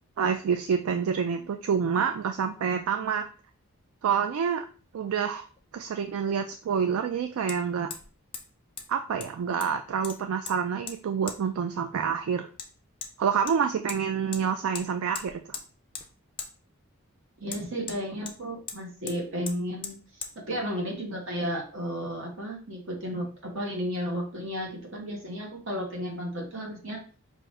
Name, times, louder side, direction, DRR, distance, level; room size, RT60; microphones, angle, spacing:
voice 1, 0.2-3.2 4.0-4.6 4.9-5.5 5.7-7.9 8.9-12.5 13.2-15.6, right 7 dB, 80° right, 6 dB, 0.3 m, -27 dB
Hammer, 5.6-5.7 7.5-7.6 7.9-8.1 8.3-8.5 8.8-8.9 9.2-9.8 10.0-10.6 10.9-11.0 11.3-11.4 12.6-12.7 13.0-13.1 13.5-14.0 14.3-14.4 14.7-14.9 15.1-15.7 15.9-16.1 16.4-16.5 17.5-18.4 18.7-18.8 19.1-19.2 19.5-19.6 19.8-20.0 20.2-20.3, left 6 dB, 25° left, 0.4 m, -38 dB
voice 2, 17.4-27.0, equal, 60° right, 0 dB, 1.3 m, -33 dB
4.7 x 2.6 x 3.2 m, 0.39 s
head